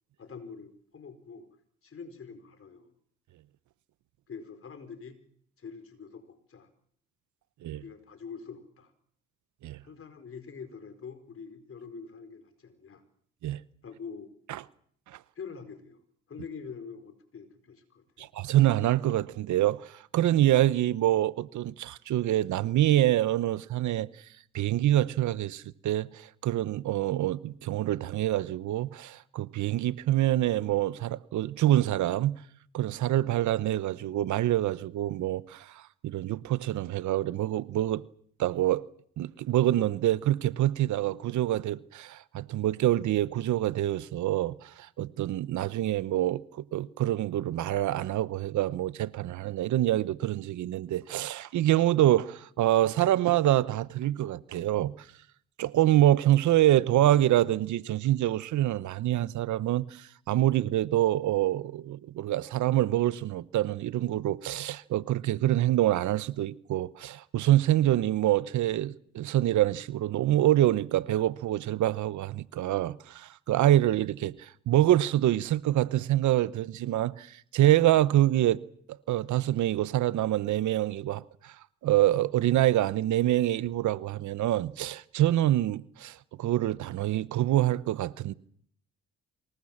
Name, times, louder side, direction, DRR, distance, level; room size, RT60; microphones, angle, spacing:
voice 1, 0.2-1.5 1.8-2.9 4.3-5.2 5.6-6.7 7.7-8.9 9.8-13.0 13.8-14.3 15.3-16.0 16.3-18.3, left 5 dB, 45° left, 4.6 m, -45 dB
voice 2, 18.2-24.1 24.5-32.4 32.7-38.0 38.4-38.8 39.2-55.1 55.6-78.6 78.9-81.5 81.8-88.3, right 13 dB, 70° right, 0.9 m, -26 dB
25.5 x 20.0 x 7.3 m
cardioid pair, 90°, 30 cm